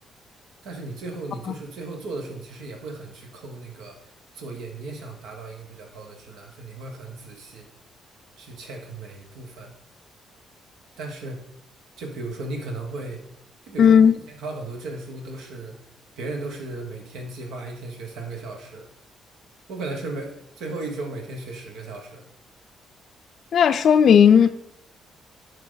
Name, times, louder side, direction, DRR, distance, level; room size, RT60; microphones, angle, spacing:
voice 1, 0.6-4.0 4.3-7.7 8.4-9.7 11.0-11.4 12.0-13.2 13.7-15.7 16.2-18.9 19.7-22.2, right 2 dB, 90° right, 2 dB, 1.4 m, -36 dB
voice 2, 13.8-14.1 23.5-24.5, left 7 dB, 60° left, 8 dB, 0.4 m, -14 dB
10.0 x 4.8 x 3.9 m, 0.76 s
cardioid pair, 90°, 0 cm